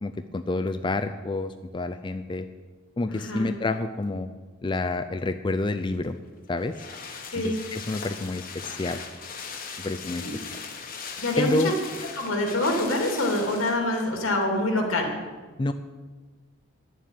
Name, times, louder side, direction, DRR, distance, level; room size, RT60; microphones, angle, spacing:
voice 1, 0.0-2.4 3.0-4.3 4.6-6.2 6.5-6.7 7.4-9.0 9.8-10.5 11.4-11.7 15.6-15.7, left 2 dB, 25° left, 9 dB, 0.4 m, -28 dB
voice 2, 3.1-3.5 7.2-7.6 10.2-10.3 11.2-11.7 12.1-15.1, left 1 dB, 85° left, 1 dB, 2.7 m, -26 dB
sound 1, 5.9-14.1 14.4-14.5, left 5 dB, 40° left, 1.1 m, -39 dB
11.0 x 7.4 x 9.0 m, 1.4 s
head